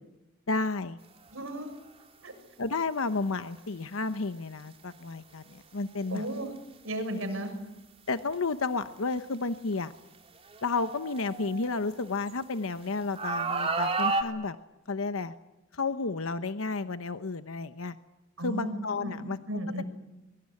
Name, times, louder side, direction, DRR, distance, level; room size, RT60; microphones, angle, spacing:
voice 1, 0.5-1.0 2.6-6.3 8.1-9.9 10.6-14.6 14.9-15.3 15.7-18.0 18.4-19.4, left 3 dB, 80° left, 10 dB, 1.0 m, -32 dB
voice 2, 1.3-1.8 2.2-2.3 6.1-6.5 6.8-7.5 18.4-19.8, right 1 dB, 75° right, 6 dB, 6.7 m, -35 dB
sound 1, 1.4-1.6 3.0-3.1 6.1-6.3 7.2-7.3 8.3-8.4 9.1-9.2 10.5-12.3 13.1-14.2, right 3 dB, 30° right, 3.3 m, -31 dB
23.5 x 23.0 x 9.9 m, 0.97 s
head